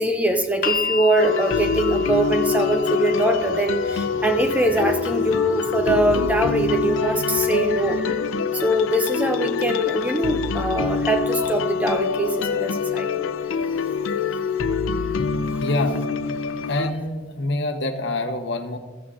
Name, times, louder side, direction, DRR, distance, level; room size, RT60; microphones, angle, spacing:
voice 1, 0.0-8.2 8.5-13.2 15.5-15.6, right 1 dB, 10° right, 5 dB, 0.6 m, -23 dB
sound 1, 0.6-12.7 13.8-13.9, left 4 dB, 45° left, 0.7 m, -36 dB
sound 2, 1.2-16.9, left 6 dB, 85° left, 0.5 m, -25 dB
voice 2, 15.6-15.9 16.7-18.8, left 2 dB, 60° left, 5 dB, 1.1 m, -25 dB
15.0 x 7.1 x 3.7 m, 1.4 s
head